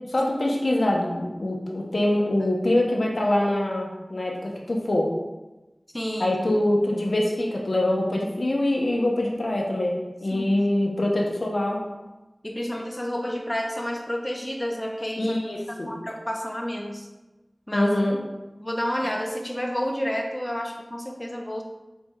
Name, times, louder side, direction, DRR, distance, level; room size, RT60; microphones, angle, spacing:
voice 1, 0.1-5.1 6.2-11.8 15.2-15.9 17.7-18.2, left 1 dB, 75° left, -1 dB, 0.8 m, -24 dB
voice 2, 5.9-6.4 10.3-10.6 12.4-15.4 15.9-17.1 17.7-17.9 18.6-21.6, equal, 20° left, 1 dB, 0.6 m, -30 dB
4.5 x 4.4 x 2.3 m, 1.1 s
wide cardioid pair, 60°, 0 cm